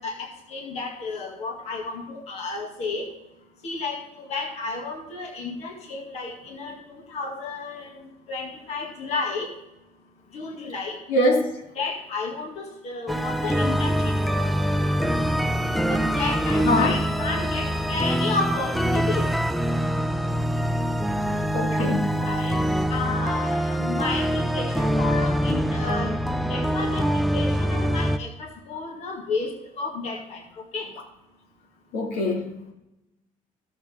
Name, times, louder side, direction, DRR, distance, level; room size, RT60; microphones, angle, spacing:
voice 1, 0.0-3.1 3.6-9.5 10.3-11.0 11.8-14.1 15.9-19.3 22.1-22.6 22.9-26.2 26.5-30.9, left 4 dB, 50° left, 1.9 m, -32 dB
voice 2, 11.1-11.6 15.6-15.7 16.6-17.0 21.5-22.2 31.9-32.6, left 1 dB, 80° left, 2.3 m, -24 dB
sound 1, 13.1-28.2, equal, ahead, 0.4 m, -24 dB
15.0 x 7.2 x 3.5 m
cardioid pair, 165°, 14 cm